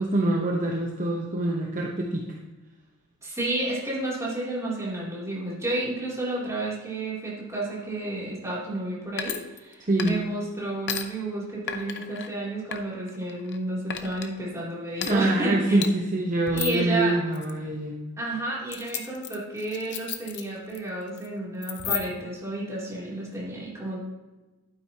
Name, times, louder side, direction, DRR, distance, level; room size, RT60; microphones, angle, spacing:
voice 1, 0.0-2.3 9.8-10.2 15.1-18.0, right 1 dB, 35° right, 0 dB, 0.9 m, -25 dB
voice 2, 3.2-15.9 16.5-17.2 18.2-24.0, right 2 dB, 15° right, -6 dB, 2.9 m, -31 dB
sound 1, 9.2-9.7 10.0-10.4 10.9-11.0 11.7-12.3 12.7-13.6 13.9-14.3 15.0-15.1 15.8-15.9 16.5-16.8 17.3-17.5 18.7-20.8 21.1-21.3 21.6-22.3, left 9 dB, 55° left, 0.7 m, -33 dB
11.5 x 9.3 x 2.9 m, 1.2 s
head